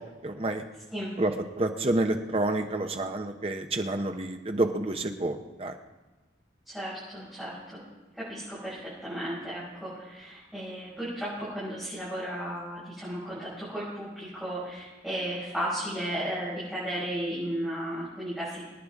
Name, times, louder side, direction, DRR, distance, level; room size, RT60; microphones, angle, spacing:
voice 1, 0.2-0.6 1.2-5.8, right 2 dB, 30° right, 6 dB, 0.8 m, -29 dB
voice 2, 6.7-7.5 8.2-18.7, equal, ahead, -13 dB, 5.8 m, -34 dB
23.5 x 9.7 x 3.6 m, 1.2 s
head